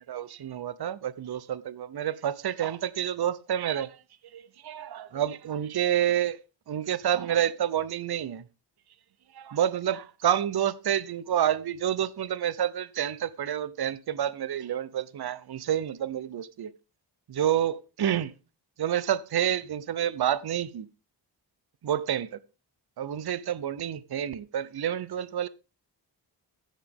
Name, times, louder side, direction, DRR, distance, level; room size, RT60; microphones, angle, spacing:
voice 1, 0.0-4.0 4.3-6.4 6.7-8.4 9.3-16.7 17.3-18.3 18.8-20.9 21.8-22.4 23.0-25.5, right 10 dB, 60° right, 0.7 m, -29 dB
13.0 x 9.1 x 3.5 m
wide cardioid pair, 145°, 44 cm